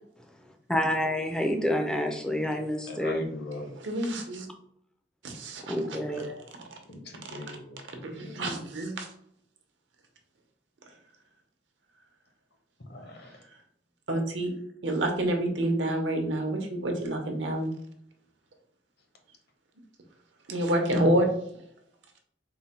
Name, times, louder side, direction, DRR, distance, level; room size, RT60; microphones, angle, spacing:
voice 1, 0.7-3.2 5.7-6.3, left 1 dB, 5° left, 3 dB, 0.3 m, -28 dB
voice 2, 2.9-3.7 6.9-8.6 12.9-13.4, left 1 dB, 60° left, 3 dB, 0.7 m, -40 dB
voice 3, 3.8-4.5 5.2-6.4 8.0-9.1 14.1-14.5 14.8-17.7 20.5-21.3, right 1 dB, 80° right, 3 dB, 0.8 m, -28 dB
3.8 x 2.1 x 4.2 m, 0.72 s
head